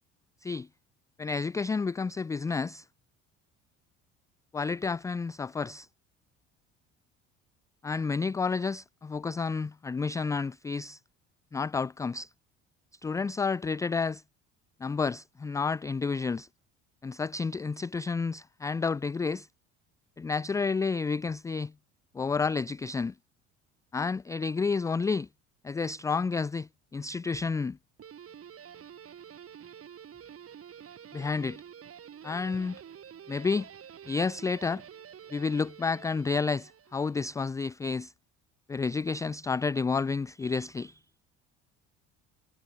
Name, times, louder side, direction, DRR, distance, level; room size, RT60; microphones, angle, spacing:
voice 1, 1.2-2.9 4.5-5.9 7.8-11.0 11.5-12.3 13.0-14.2 14.8-16.5 17.0-19.5 20.2-21.7 22.1-23.1 23.9-25.3 25.6-27.8 31.1-31.6 32.2-32.8 33.3-33.7 34.1-34.8 35.3-38.1 38.7-41.0, left 4 dB, 10° left, 0.3 m, -30 dB
Guitar, 28.0-37.3, right 8 dB, 40° right, 2.9 m, -49 dB
hypercardioid pair, 60°, 36 cm